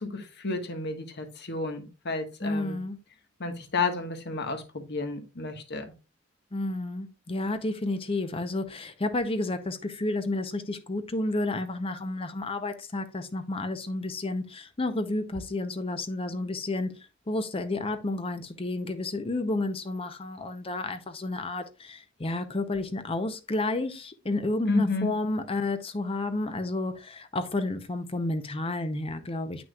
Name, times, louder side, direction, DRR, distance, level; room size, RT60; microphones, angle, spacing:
voice 1, 0.0-2.8 3.4-5.9 24.7-25.1, left 3 dB, 55° left, 1.3 m, -31 dB
voice 2, 2.4-3.0 6.5-29.6, left 2 dB, 25° left, 0.7 m, -31 dB
9.1 x 6.0 x 2.3 m
head